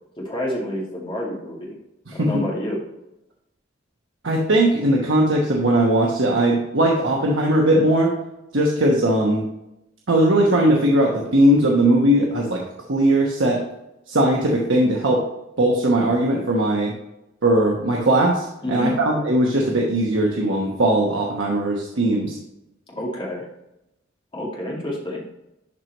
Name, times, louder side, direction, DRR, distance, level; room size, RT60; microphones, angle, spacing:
voice 1, 0.2-1.7 2.1-2.8 18.6-19.0 22.9-23.5 24.3-25.2, left 1 dB, 25° left, -3 dB, 2.1 m, -28 dB
voice 2, 4.2-8.1 8.5-9.4 10.1-12.6 12.9-13.6 14.1-15.2 15.6-16.9 17.4-22.3, right 1 dB, 75° right, -2 dB, 1.1 m, -19 dB
11.5 x 4.6 x 3.0 m, 0.88 s
head